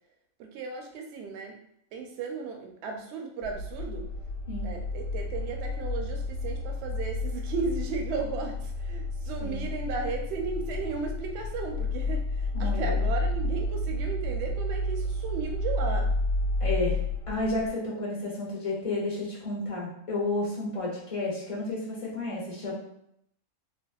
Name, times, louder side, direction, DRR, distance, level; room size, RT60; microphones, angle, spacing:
voice 1, 0.4-1.6 1.9-4.1 4.6-16.1, right 4 dB, 65° right, 3 dB, 0.7 m, -35 dB
sound 1, 3.4-17.7, left 2 dB, 75° left, 1.0 m, -31 dB
voice 2, 12.5-12.9 16.6-17.0 17.3-22.7, left 2 dB, 30° left, -5 dB, 0.7 m, -31 dB
3.3 x 2.1 x 2.3 m, 0.73 s
omnidirectional pair, 1.4 m